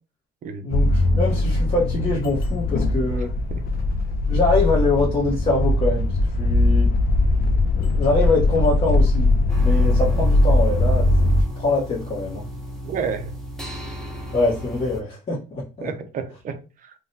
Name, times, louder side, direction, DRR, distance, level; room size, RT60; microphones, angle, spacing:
voice 1, 0.6-3.3 4.3-6.1 6.4-6.9 7.7-9.3 9.6-11.3 11.6-12.4 14.3-15.9, left 2 dB, 35° left, 1.1 m, -24 dB
sound 1, 0.7-11.4, left 2 dB, 55° left, 0.5 m, -20 dB
sound 2, 9.5-15.0, left 1 dB, ahead, 0.7 m, -34 dB
voice 2, 12.8-13.4 15.8-16.9, right 6 dB, 45° right, 0.5 m, -30 dB
3.6 x 2.2 x 2.7 m
cardioid pair, 135°, 18 cm